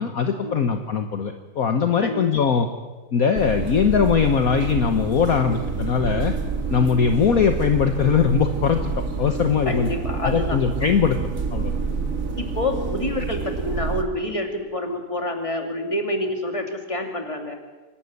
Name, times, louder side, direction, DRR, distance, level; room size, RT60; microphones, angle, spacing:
voice 1, 0.0-2.7 3.1-6.3 6.7-8.9 9.2-9.9 10.2-11.2 11.5-11.7, left 6 dB, 55° left, 6 dB, 1.5 m, -21 dB
sound 1, 3.3-14.0, right 4 dB, 45° right, 2.2 m, -28 dB
voice 2, 9.6-10.6 12.4-17.6, left 1 dB, 15° left, 4 dB, 2.5 m, -27 dB
26.0 x 12.5 x 9.7 m, 1.3 s
omnidirectional pair, 2.0 m